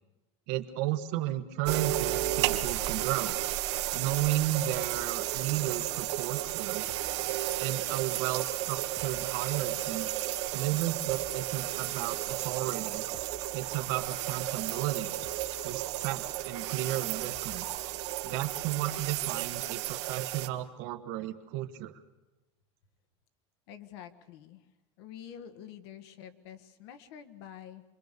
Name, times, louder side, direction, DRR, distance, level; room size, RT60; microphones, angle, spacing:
voice 1, 0.5-3.4 3.9-6.8 7.6-10.1 10.5-13.0 13.5-15.2 15.6-17.7 18.2-22.0, right 14 dB, 50° right, 8 dB, 1.4 m, -33 dB
sound 1, 1.6-20.5, right 15 dB, 65° right, 1.4 m, -33 dB
sound 2, 2.7-19.4, equal, 30° left, 1.5 m, -54 dB
voice 2, 23.7-24.7 25.0-27.8, left 9 dB, 55° left, 9 dB, 1.7 m, -47 dB
27.5 x 23.0 x 6.8 m, 1.1 s
supercardioid pair, 175°, 15 cm